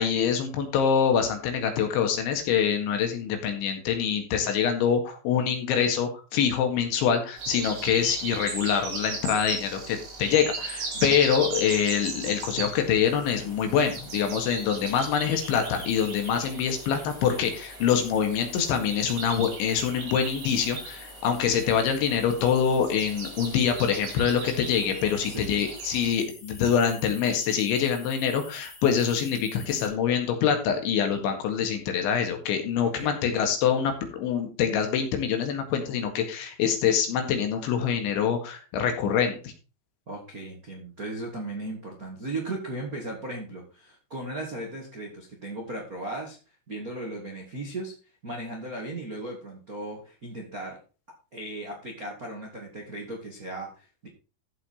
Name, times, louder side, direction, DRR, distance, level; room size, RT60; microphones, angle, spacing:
voice 1, 0.0-39.5, left 7 dB, 70° left, 5 dB, 4.0 m, -25 dB
sound 1, 7.4-26.1, right 3 dB, 85° right, 7.9 m, -38 dB
sound 2, 13.0-29.9, left 2 dB, 25° left, 3.2 m, -48 dB
voice 2, 32.8-33.2 40.1-46.4 46.7-47.9 48.2-50.8 51.3-54.1, right 2 dB, 65° right, -1 dB, 0.8 m, -36 dB
14.5 x 5.8 x 4.3 m, 0.34 s
omnidirectional pair, 5.6 m